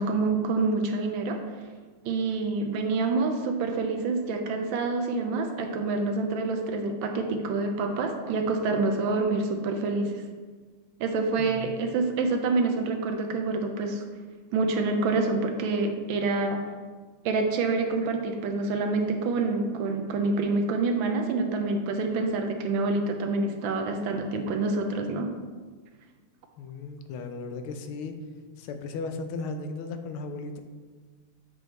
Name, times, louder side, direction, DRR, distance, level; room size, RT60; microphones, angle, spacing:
voice 1, 0.0-1.4 2.0-10.1 11.0-14.0 14.5-16.6 17.2-25.3, right 3 dB, 75° right, 4 dB, 1.3 m, -27 dB
voice 2, 11.4-11.8 26.6-28.1 28.6-30.6, left 3 dB, 85° left, 6 dB, 1.5 m, -36 dB
7.7 x 4.9 x 3.1 m, 1.4 s
omnidirectional pair, 2.3 m